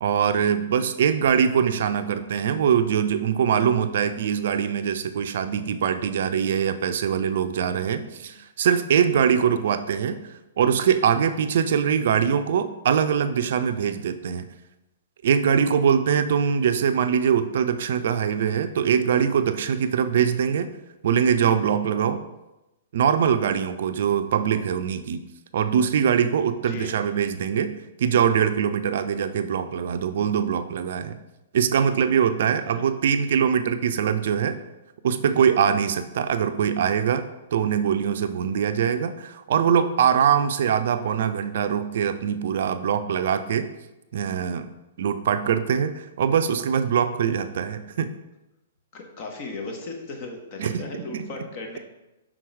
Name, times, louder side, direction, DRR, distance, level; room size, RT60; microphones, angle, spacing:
voice 1, 0.0-10.2 10.6-14.5 15.2-20.7 21.0-22.2 22.9-25.2 25.5-31.2 31.5-34.6 35.0-37.3 37.5-43.7 44.1-44.7 45.0-48.1 50.6-51.3, right 7 dB, 60° right, 9 dB, 0.4 m, -23 dB
voice 2, 7.9-8.3 26.6-26.9 32.6-32.8 48.9-51.8, left 3 dB, 40° left, 2 dB, 1.4 m, -37 dB
6.1 x 3.8 x 4.6 m, 0.99 s
hypercardioid pair, 120°, 0 cm